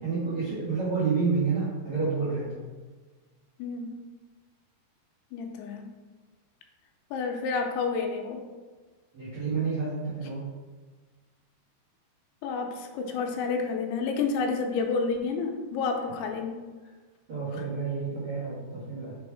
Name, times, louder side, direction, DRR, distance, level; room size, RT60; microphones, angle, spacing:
voice 1, 0.0-2.6 9.1-10.5 17.3-19.1, right 4 dB, 65° right, -10 dB, 1.3 m, -29 dB
voice 2, 3.6-4.0 5.3-5.9 7.1-8.5 12.4-16.6, left 4 dB, 85° left, 3 dB, 2.6 m, -30 dB
6.0 x 3.4 x 4.6 m, 1.4 s
omnidirectional pair, 4.7 m